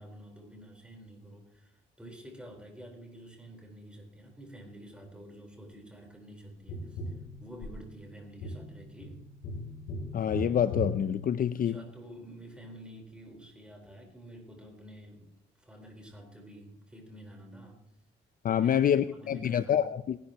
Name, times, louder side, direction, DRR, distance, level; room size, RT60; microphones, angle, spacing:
voice 1, 0.0-7.1 7.4-9.2 11.5-15.2 15.6-17.8 18.5-19.9, right 1 dB, 5° right, 4.2 m, -49 dB
Tap, 6.7-12.0 14.6-14.7, left 1 dB, 85° left, 3.4 m, -39 dB
voice 2, 10.1-11.8 18.4-20.2, left 9 dB, 45° left, 0.5 m, -27 dB
19.5 x 11.5 x 3.0 m
cardioid pair, 90°, 20 cm